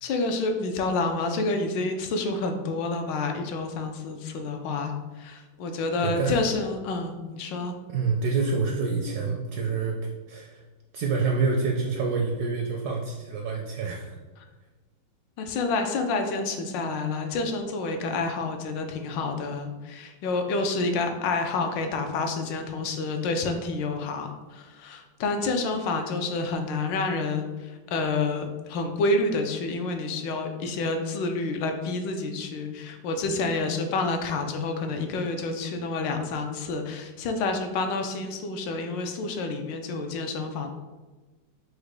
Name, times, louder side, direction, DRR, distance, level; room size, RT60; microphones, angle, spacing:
voice 1, 0.0-7.8 15.4-40.7, left 3 dB, 75° left, 5 dB, 1.2 m, -29 dB
voice 2, 6.0-6.4 7.9-10.0 10.3-10.6 10.9-14.2, right 4 dB, 75° right, 0 dB, 0.9 m, -27 dB
4.7 x 2.1 x 4.8 m, 1.3 s
omnidirectional pair, 2.1 m